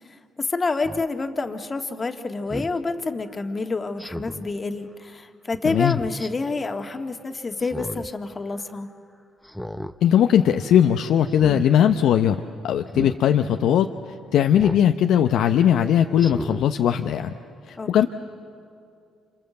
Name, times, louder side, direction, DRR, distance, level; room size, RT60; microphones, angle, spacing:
voice 1, 0.4-8.9 17.8-18.1, left 3 dB, 35° left, 6 dB, 1.9 m, -28 dB
Speech synthesizer, 0.8-1.0 2.5-2.8 4.0-4.5 5.8-6.3 7.6-8.1 8.5-8.6 9.4-10.0 10.3-10.6 11.3-11.7 12.9-13.2 14.5-14.9 15.4-15.5 16.2-16.7 17.1-17.2, equal, ahead, 1.1 m, -33 dB
voice 2, 5.6-6.0 10.0-12.4 12.6-13.9 14.3-17.3 17.7-18.1, left 9 dB, 70° left, 6 dB, 0.7 m, -19 dB
28.0 x 27.5 x 7.8 m, 2.4 s
hypercardioid pair, 55°, 0 cm